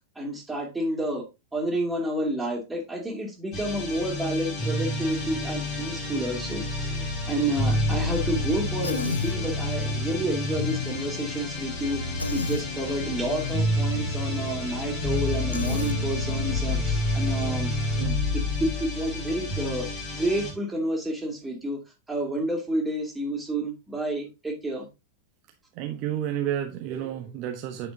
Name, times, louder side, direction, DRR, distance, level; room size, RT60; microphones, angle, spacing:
voice 1, 0.2-1.2 1.5-12.0 12.3-17.7 18.3-19.9 20.1-21.8 22.1-24.9, right 1 dB, 10° right, 2.6 m, -30 dB
sound 1, 3.5-20.5, left 2 dB, 35° left, 3.9 m, -29 dB
Human voice, 8.8-9.4 12.2-12.7 15.5-16.0, left 4 dB, 80° left, 0.6 m, -30 dB
voice 2, 25.7-27.9, right 10 dB, 40° right, 0.9 m, -31 dB
9.0 x 6.0 x 2.7 m
figure-of-eight pair, 90°, 0 cm